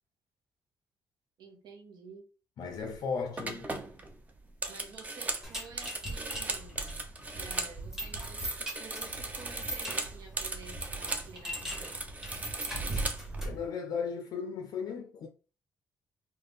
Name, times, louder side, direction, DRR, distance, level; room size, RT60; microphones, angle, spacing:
voice 1, 1.4-2.3 4.7-7.0 7.3-12.0, right 4 dB, 80° right, 1.1 m, -51 dB
voice 2, 2.6-3.7 13.4-15.3, left 5 dB, 60° left, 0.4 m, -36 dB
sound 1, 2.7-3.0 3.4-7.8 8.0-11.3 11.6-13.5, right 3 dB, 20° right, 0.5 m, -38 dB
sound 2, 5.4-13.7, right 1 dB, 5° right, 0.9 m, -40 dB
3.9 x 2.0 x 3.5 m
cardioid pair, 150°, 7 cm